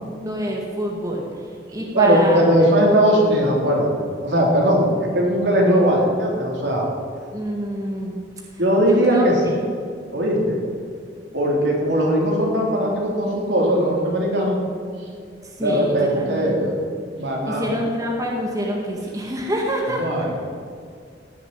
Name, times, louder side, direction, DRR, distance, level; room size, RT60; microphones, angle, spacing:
voice 1, 0.0-1.2 1.7-2.4 7.3-8.2 8.9-9.5 15.6-16.6 17.5-20.0, equal, 20° right, -1 dB, 1.9 m, -26 dB
voice 2, 1.9-4.9 5.1-6.8 8.6-9.4 10.1-10.6 11.3-14.6 15.6-16.7 17.1-17.8 19.9-20.3, equal, 70° right, -2 dB, 3.8 m, -19 dB
17.0 x 7.6 x 9.2 m, 2.2 s
head